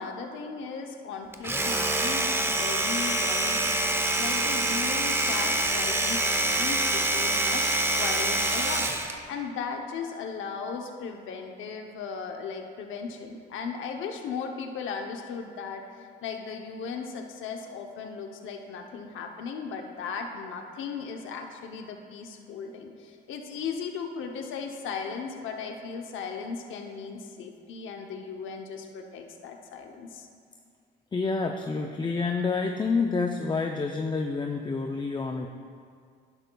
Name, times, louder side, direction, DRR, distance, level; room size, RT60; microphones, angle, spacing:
voice 1, 0.0-9.0 9.3-30.3, left 5 dB, 80° left, 3 dB, 0.7 m, -37 dB
Domestic sounds home sounds, 1.3-9.2, right 2 dB, 10° right, 0.7 m, -26 dB
voice 2, 31.1-35.5, left 4 dB, 25° left, 4 dB, 0.5 m, -28 dB
11.5 x 10.5 x 2.3 m, 2.2 s
cardioid pair, 90°, 20 cm